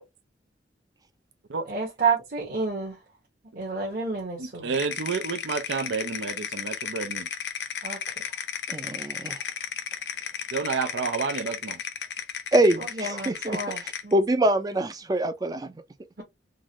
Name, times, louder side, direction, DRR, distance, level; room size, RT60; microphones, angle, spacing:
voice 1, 1.7-3.0 3.5-4.7 7.8-8.0 12.8-14.1 16.2-16.3, right 4 dB, 50° right, 1.4 m, -29 dB
voice 2, 4.4-7.3 10.5-11.8, right 5 dB, 80° right, 0.5 m, -30 dB
sound 1, 4.7-14.1, left 8 dB, 70° left, 0.6 m, -34 dB
voice 3, 8.7-9.4 12.5-15.7, right 1 dB, 20° right, 0.4 m, -25 dB
3.9 x 2.5 x 2.9 m
head